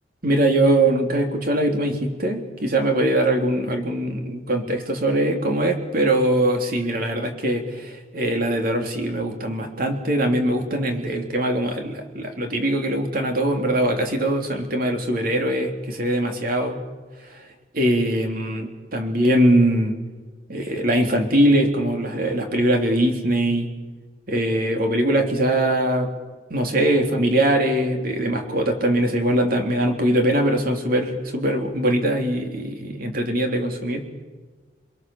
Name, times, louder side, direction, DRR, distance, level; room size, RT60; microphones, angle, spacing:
voice 1, 0.2-16.8 17.2-17.4 17.7-20.0 20.5-23.7 24.3-26.1 26.5-34.0, right 1 dB, 55° right, 4 dB, 3.3 m, -22 dB
29.0 x 22.5 x 7.1 m, 1.3 s
head